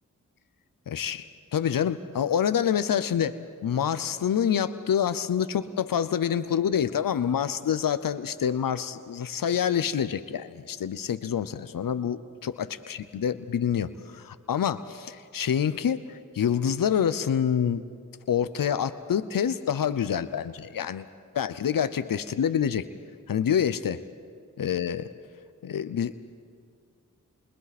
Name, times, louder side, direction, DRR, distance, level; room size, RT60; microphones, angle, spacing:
voice 1, 0.9-1.2 1.5-3.4 3.6-17.8 18.3-21.0 21.3-22.8 23.3-24.0 24.6-25.1 25.6-26.1, left 8 dB, 90° left, 13 dB, 0.7 m, -27 dB
28.5 x 28.0 x 4.2 m, 2.2 s
cardioid pair, 40°, 33 cm